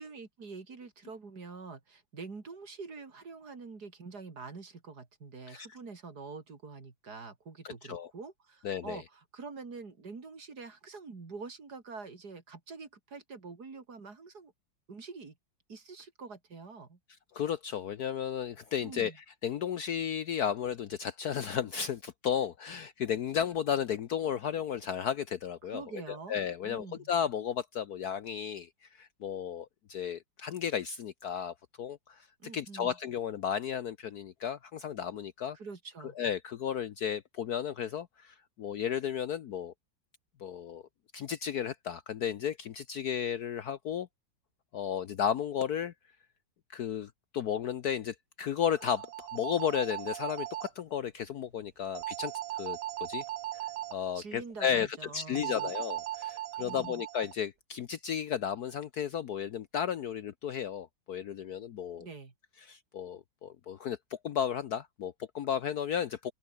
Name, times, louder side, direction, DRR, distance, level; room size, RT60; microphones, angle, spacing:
voice 1, 0.0-14.5 14.9-15.3 15.7-17.0 18.8-19.2 25.6-26.4 26.6-27.1 32.4-33.0 35.5-36.1 54.1-55.7 56.6-57.0 62.0-62.3, right 4 dB, 55° right, 3.5 m, -46 dB
voice 2, 7.6-8.1 8.6-9.0 17.3-19.1 19.4-25.8 26.1-28.7 29.0-32.3 32.5-35.6 36.2-39.7 40.4-40.8 41.1-44.1 44.7-45.9 46.7-53.2 53.5-53.6 53.9-62.1 62.7-66.3, left 8 dB, 60° left, 1.2 m, -34 dB
sound 1, 48.7-50.7 51.9-53.9 55.4-57.3, right 13 dB, 90° right, 0.7 m, -38 dB
open air
omnidirectional pair, 2.1 m